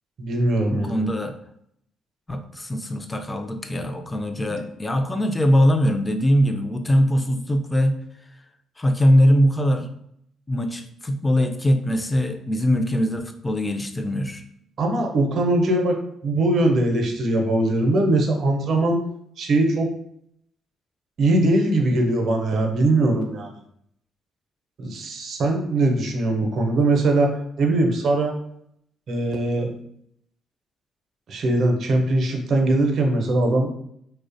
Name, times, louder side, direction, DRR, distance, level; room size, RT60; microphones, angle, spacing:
voice 1, 0.2-1.0 14.8-16.0 16.2-19.0 19.4-19.9 21.2-23.5 24.8-27.3 27.6-28.4 29.1-29.7 31.3-33.7, right 2 dB, 60° right, 2 dB, 0.5 m, -21 dB
voice 2, 0.7-1.3 2.3-8.0 8.8-9.9 10.5-14.4, equal, 20° left, 6 dB, 0.3 m, -21 dB
2.4 x 2.1 x 2.6 m, 0.72 s
supercardioid pair, 60°, 0 cm